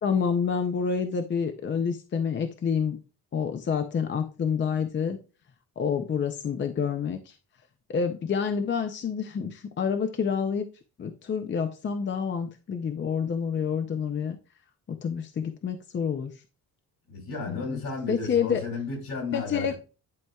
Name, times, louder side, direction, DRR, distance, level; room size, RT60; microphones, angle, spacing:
voice 1, 0.0-3.0 3.3-5.2 5.8-7.4 7.9-10.7 11.0-14.4 14.9-16.3 17.5-17.8 18.1-18.6 19.3-19.7, left 6 dB, 30° left, 0.5 m, -28 dB
voice 2, 17.1-19.7, left 4 dB, 65° left, 3.0 m, -33 dB
10.5 x 4.4 x 2.3 m
cardioid pair, 160°, 37 cm